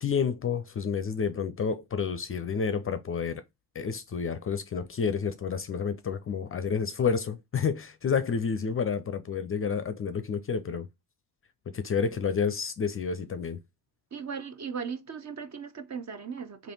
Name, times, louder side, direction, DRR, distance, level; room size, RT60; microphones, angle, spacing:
voice 1, 0.0-3.4 3.7-10.9 11.7-13.6, left 6 dB, 30° left, 0.5 m, -29 dB
voice 2, 14.1-16.7, right 6 dB, 40° right, 0.8 m, -37 dB
3.3 x 2.6 x 4.0 m
hypercardioid pair, 40°, 44 cm